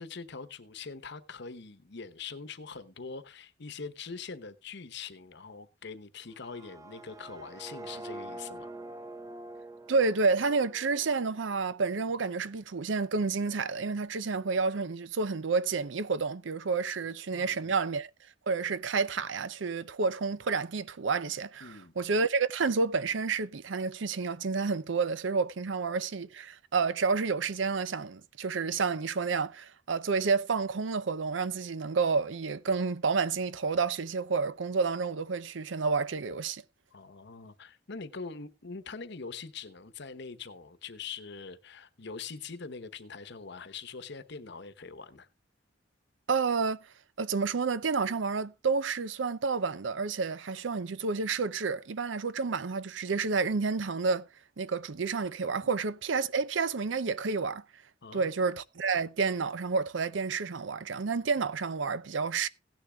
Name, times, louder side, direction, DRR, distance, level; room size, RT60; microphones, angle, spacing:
voice 1, 0.0-8.7 17.3-17.7 21.6-21.9 36.9-45.3 55.6-55.7 58.0-58.3, left 5 dB, 60° left, 1.0 m, -43 dB
sound 1, 6.3-12.2, right 1 dB, 15° right, 0.6 m, -46 dB
voice 2, 9.9-18.1 18.5-36.6 46.3-46.8 47.2-54.3 54.6-57.6 58.1-62.5, right 4 dB, 70° right, 0.6 m, -30 dB
17.0 x 10.5 x 2.3 m
head